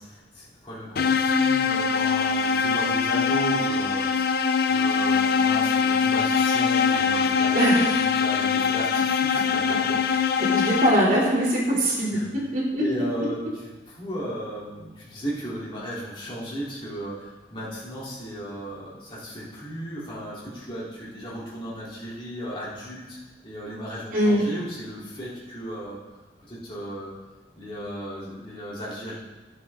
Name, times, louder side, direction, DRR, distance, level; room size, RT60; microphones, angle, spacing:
voice 1, 0.0-10.4 12.1-12.3 12.8-13.7 14.0-23.2 23.4-26.0 26.5-27.1 27.6-29.1, equal, 30° left, -7 dB, 3.7 m, -35 dB
sound 1, 1.0-11.3, left 6 dB, 60° left, 0.6 m, -23 dB
voice 2, 7.5-8.1 10.0-12.8 13.2-13.3 24.1-24.4, right 1 dB, 50° right, -5 dB, 3.2 m, -23 dB
15.5 x 7.8 x 3.8 m, 1.2 s
head